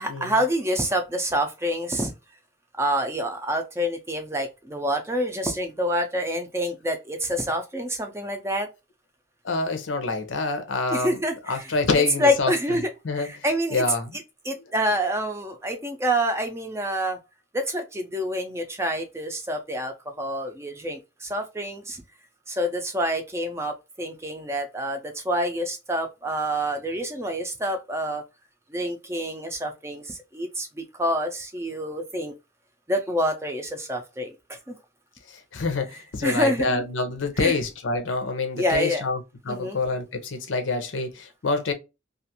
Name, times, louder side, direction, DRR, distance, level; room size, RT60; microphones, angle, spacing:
voice 1, 0.0-2.1 2.8-8.7 10.9-11.7 12.2-12.9 13.2-13.8 14.4-17.2 17.5-22.0 22.5-28.2 28.7-32.3 32.9-34.3 34.7-34.8 36.2-36.8 37.4-37.6 38.6-39.1 39.5-39.8, equal, 15° right, 0.4 m, -27 dB
voice 2, 9.4-11.2 11.5-12.5 13.0-13.4 13.7-14.2 35.3-41.7, left 3 dB, 90° left, 0.7 m, -26 dB
2.5 x 2.4 x 2.7 m
head